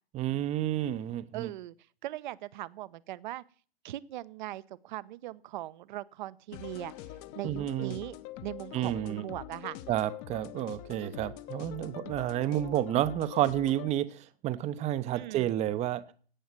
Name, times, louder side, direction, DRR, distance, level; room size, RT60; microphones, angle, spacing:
voice 1, 0.1-1.5 7.4-8.0 8.7-9.2 9.9-16.0, right 12 dB, 20° right, 0.8 m, -30 dB
voice 2, 1.3-1.7 2.0-3.4 3.8-6.9 7.3-8.1 8.4-9.8 15.1-15.5, right 15 dB, 50° right, 0.9 m, -40 dB
sound 1, 6.5-13.9, left 13 dB, 35° left, 1.1 m, -44 dB
17.0 x 9.2 x 6.1 m
hypercardioid pair, 120°, 31 cm